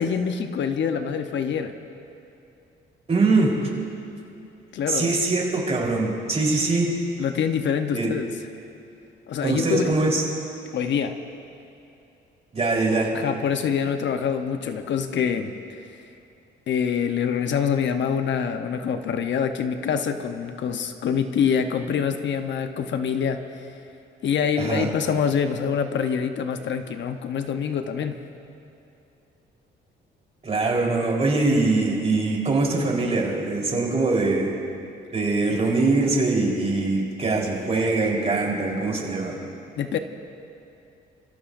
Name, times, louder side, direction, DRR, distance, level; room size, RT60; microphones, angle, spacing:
voice 1, 0.0-1.7 4.7-5.1 7.2-8.3 9.3-9.9 10.7-11.2 13.1-15.8 16.7-23.4 24.2-28.1 39.8-40.0, left 7 dB, 65° left, 7 dB, 0.9 m, -25 dB
voice 2, 3.1-3.5 4.9-6.9 7.9-8.1 9.4-10.2 12.5-13.1 24.6-24.9 30.4-34.5 35.1-39.4, right 3 dB, 30° right, -2 dB, 4.0 m, -22 dB
29.0 x 15.5 x 2.6 m, 2.7 s
cardioid pair, 90°, 20 cm